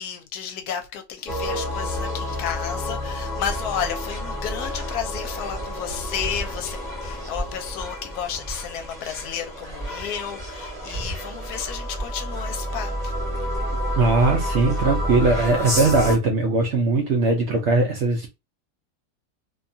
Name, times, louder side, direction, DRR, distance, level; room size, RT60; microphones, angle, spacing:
voice 1, 0.0-13.1, left 8 dB, 75° left, 1.1 m, -32 dB
sound 1, 1.3-16.2, equal, ahead, 0.7 m, -29 dB
voice 2, 13.9-18.3, right 3 dB, 70° right, 0.6 m, -20 dB
2.7 x 2.3 x 2.6 m
omnidirectional pair, 1.8 m